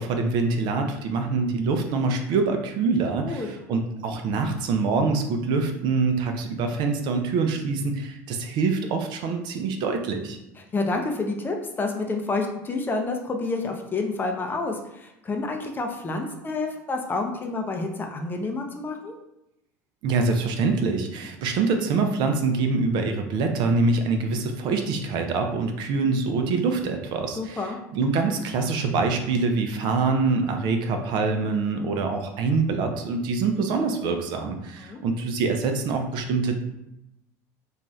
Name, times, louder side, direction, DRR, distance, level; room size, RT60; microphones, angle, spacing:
voice 1, 0.0-10.4 20.0-36.6, right 4 dB, 60° right, 5 dB, 0.4 m, -25 dB
voice 2, 10.7-19.1 27.4-27.8 34.8-35.0, left 3 dB, 25° left, 3 dB, 0.5 m, -29 dB
2.6 x 2.3 x 3.1 m, 0.87 s
supercardioid pair, 100°, 9 cm